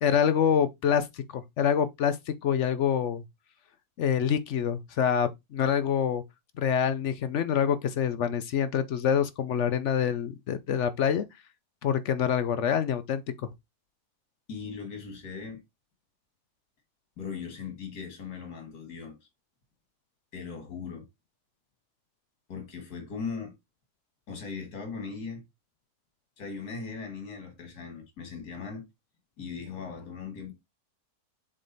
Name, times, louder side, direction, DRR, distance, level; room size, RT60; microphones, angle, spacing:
voice 1, 0.0-3.2 4.0-6.2 6.6-11.2 11.8-13.5, left 8 dB, 60° left, 0.8 m, -26 dB
voice 2, 14.5-15.6 17.2-19.3 20.3-21.1 22.5-23.5 24.3-25.4 26.4-28.8 29.4-30.5, left 5 dB, 85° left, 2.1 m, -39 dB
7.4 x 3.3 x 4.0 m
omnidirectional pair, 1.6 m